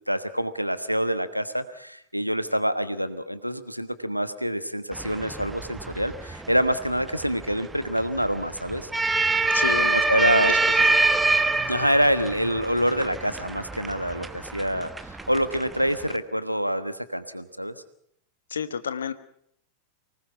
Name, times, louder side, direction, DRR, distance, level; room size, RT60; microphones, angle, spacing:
voice 1, 0.1-8.9 9.9-10.6 11.7-17.7, equal, 90° right, 13 dB, 1.3 m, -26 dB
sound 1, 4.9-16.2, right 3 dB, 10° right, 1.2 m, -26 dB
voice 2, 9.5-10.8 11.0-11.1 18.5-19.1, left 7 dB, 70° left, 14 dB, 1.3 m, -31 dB
24.5 x 19.5 x 5.9 m, 0.69 s
figure-of-eight pair, 90°, 0 cm